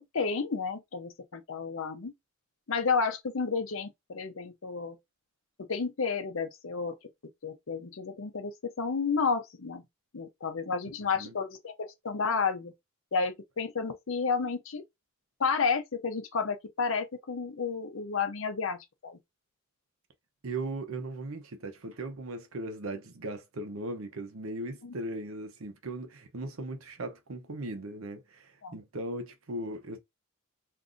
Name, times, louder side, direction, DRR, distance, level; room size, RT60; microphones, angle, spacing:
voice 1, 0.0-2.1 2.7-5.0 5.6-6.9 7.4-9.8 10.1-12.7 13.1-14.8 15.4-19.2 24.8-24.9 28.6-28.8, left 5 dB, 65° left, 0.6 m, -31 dB
voice 2, 20.4-30.0, right 2 dB, 75° right, 0.8 m, -38 dB
2.6 x 2.5 x 3.6 m
head